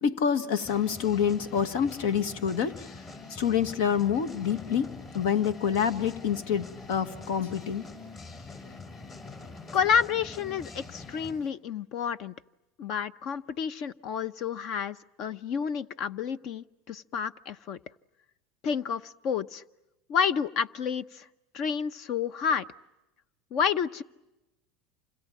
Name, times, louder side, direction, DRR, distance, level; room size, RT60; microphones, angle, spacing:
voice 1, 0.0-2.9 3.3-7.8, left 7 dB, 75° left, 11 dB, 1.7 m, -27 dB
sound 1, 0.6-11.4, left 3 dB, 35° left, 6.8 m, -44 dB
voice 2, 9.7-12.3 12.8-17.8 18.6-19.6 20.1-21.2 21.5-22.7 23.5-24.0, left 7 dB, 50° left, 15 dB, 0.9 m, -29 dB
28.5 x 26.5 x 7.4 m, 0.99 s
supercardioid pair, 125°, 0 cm